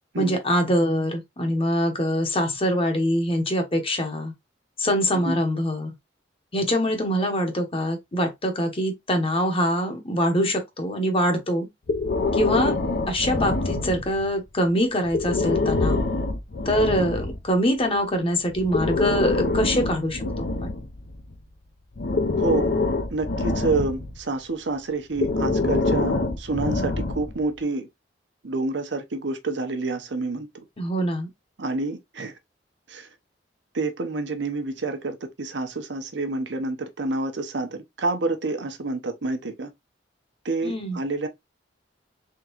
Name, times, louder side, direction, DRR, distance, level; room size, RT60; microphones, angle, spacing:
voice 1, 0.2-4.3 4.8-5.9 6.5-11.7 12.3-12.8 13.1-16.1 16.6-20.5 30.8-31.3 40.6-41.0, equal, 30° left, 1.0 m, -24 dB
Breathing, 11.9-14.3 15.1-17.4 18.5-21.4 22.0-24.2 25.1-27.4, left 3 dB, 60° left, 0.7 m, -25 dB
voice 2, 22.4-22.7 23.1-27.9 28.4-30.5 31.6-32.3 32.9-33.1 33.7-39.7 40.4-41.3, right 3 dB, 70° right, 0.9 m, -28 dB
3.7 x 3.6 x 2.9 m
head